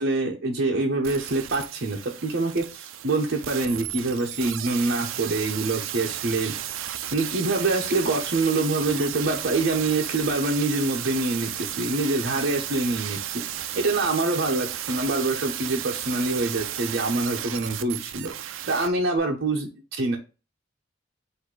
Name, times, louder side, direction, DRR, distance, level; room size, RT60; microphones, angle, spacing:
voice 1, 0.0-6.5 7.1-13.4 13.8-18.3 18.7-19.7 20.0-20.2, right 2 dB, 55° right, -1 dB, 0.8 m, -25 dB
sound 1, 1.0-18.9 19.2-19.3, right 11 dB, 80° right, 0.5 m, -34 dB
4.2 x 2.6 x 4.6 m, 0.31 s
head